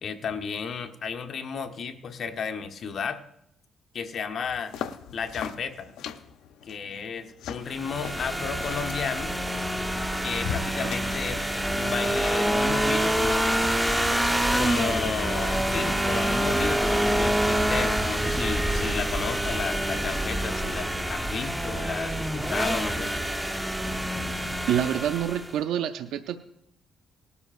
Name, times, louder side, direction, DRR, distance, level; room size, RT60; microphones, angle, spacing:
voice 1, 0.0-3.2 3.9-4.7 5.1-5.9 6.7-9.3 10.2-13.7 14.6-23.1, left 6 dB, 55° left, 7 dB, 0.9 m, -33 dB
sound 1, 4.4-11.4, left 8 dB, 85° left, 0.6 m, -40 dB
sound 2, 7.7-25.5, right 1 dB, 5° right, 0.9 m, -26 dB
voice 2, 24.7-26.4, right 10 dB, 85° right, 9 dB, 0.5 m, -27 dB
19.0 x 12.5 x 2.5 m, 0.76 s
cardioid pair, 90°, 0 cm